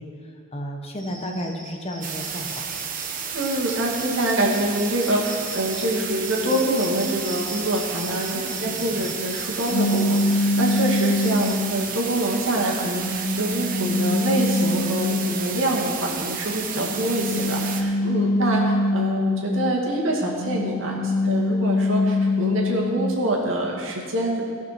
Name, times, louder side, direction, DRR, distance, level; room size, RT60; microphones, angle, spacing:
voice 1, 0.0-2.7 8.3-8.6 8.9-9.1, equal, 30° left, 2 dB, 1.0 m, -33 dB
Cricket, 1.0-11.5, right 1 dB, ahead, 1.8 m, -42 dB
sound 1, 2.0-17.8, right 6 dB, 40° right, 0.9 m, -32 dB
voice 2, 3.3-24.4, right 1 dB, 75° right, -2 dB, 2.1 m, -25 dB
sound 2, 9.7-11.9 12.5-15.7 16.8-19.8 20.2-23.2, left 2 dB, 50° left, 0.5 m, -24 dB
16.5 x 5.9 x 6.0 m, 2.1 s
head